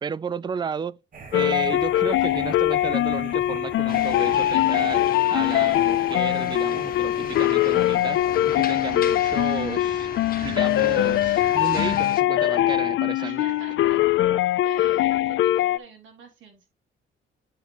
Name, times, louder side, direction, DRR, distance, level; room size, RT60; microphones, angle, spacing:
voice 1, 0.0-1.0 1.3-5.0 5.3-8.2 8.5-10.1 10.4-13.4, right 6 dB, 25° right, 0.4 m, -32 dB
sound 1, 1.1-12.0, right 4 dB, 45° right, 1.8 m, -42 dB
sound 2, 1.3-15.8, left 14 dB, 75° left, 0.5 m, -22 dB
sound 3, 3.9-12.2, left 7 dB, 45° left, 1.4 m, -38 dB
voice 2, 13.2-14.0 14.6-16.7, right 4 dB, 70° right, 3.4 m, -46 dB
9.8 x 5.2 x 3.0 m
cardioid pair, 90°, 20 cm